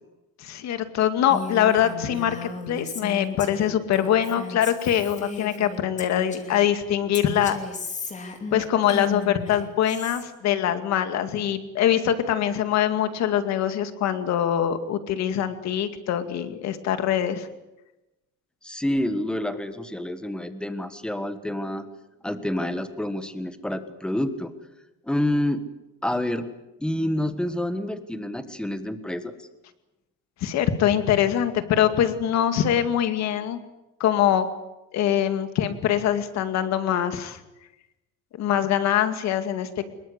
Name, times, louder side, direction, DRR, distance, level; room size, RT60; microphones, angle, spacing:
voice 1, 0.4-7.6 8.5-17.5 30.4-33.6 34.0-34.5 34.9-37.4 38.4-39.9, left 10 dB, 55° left, 9 dB, 2.3 m, -23 dB
Female speech woman speaking, 1.3-6.7 7.1-10.2, left 4 dB, 20° left, 2.8 m, -35 dB
voice 2, 18.6-21.9 22.2-24.5 25.0-25.6 26.0-26.5 26.8-29.4, left 1 dB, 5° left, 10 dB, 1.4 m, -28 dB
25.0 x 22.0 x 8.2 m, 0.97 s
cardioid pair, 180°, 33 cm